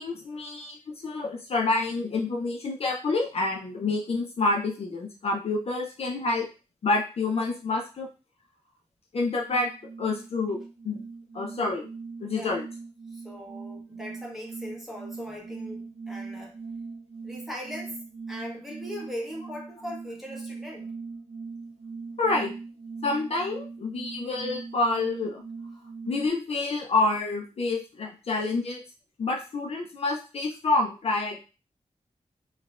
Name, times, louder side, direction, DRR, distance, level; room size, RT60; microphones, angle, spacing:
voice 1, 0.0-6.5 6.8-8.1 9.1-9.7 10.0-11.0 11.3-11.9 12.2-12.6 22.2-22.5 23.0-25.4 26.1-28.8 29.2-31.4, left 3 dB, 55° left, 0 dB, 0.4 m, -28 dB
sound 1, 9.5-26.3, right 4 dB, 80° right, 0.4 m, -40 dB
voice 2, 13.1-16.6 17.2-18.0 18.3-20.9, equal, ahead, -2 dB, 0.8 m, -39 dB
3.1 x 2.1 x 2.3 m, 0.33 s
wide cardioid pair, 140°, 13 cm